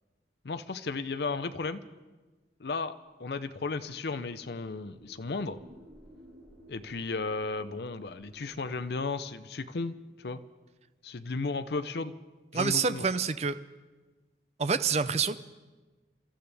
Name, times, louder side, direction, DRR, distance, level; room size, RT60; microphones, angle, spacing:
voice 1, 0.4-1.8 2.6-5.6 6.7-10.4 11.0-12.1 12.5-13.1, left 3 dB, 65° left, 11 dB, 0.6 m, -34 dB
sound 1, 3.5-9.5, equal, 70° right, 6.2 m, -56 dB
voice 2, 12.5-13.6 14.6-15.4, right 5 dB, 35° right, 12 dB, 0.5 m, -27 dB
29.5 x 13.5 x 3.4 m, 1.3 s
head